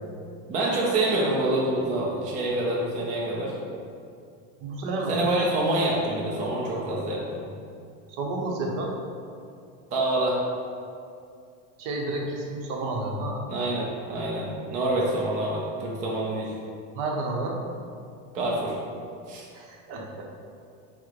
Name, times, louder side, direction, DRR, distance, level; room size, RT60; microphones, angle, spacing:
voice 1, 0.5-3.6 5.1-7.4 9.9-10.4 13.5-16.5 18.3-18.8 19.3-19.5, right 1 dB, 25° right, -4 dB, 0.4 m, -26 dB
voice 2, 4.6-5.2 8.1-8.9 11.8-13.4 16.9-17.6 19.5-20.3, right 2 dB, 55° right, 0 dB, 0.7 m, -30 dB
6.0 x 2.1 x 3.1 m, 2.4 s
supercardioid pair, 150°, 34 cm